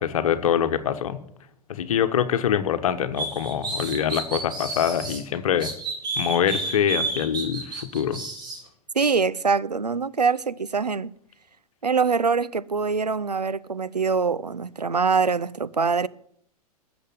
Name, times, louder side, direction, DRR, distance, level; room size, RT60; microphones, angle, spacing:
voice 1, 0.0-1.2 1.7-5.7 6.2-8.2, left 9 dB, 60° left, 1.3 m, -24 dB
sound 1, 3.2-5.2 5.6-8.6, right 3 dB, 20° right, 4.4 m, -31 dB
voice 2, 8.9-11.1 11.8-16.1, right 5 dB, 85° right, 0.6 m, -24 dB
13.5 x 7.2 x 9.3 m
figure-of-eight pair, 100°, 20 cm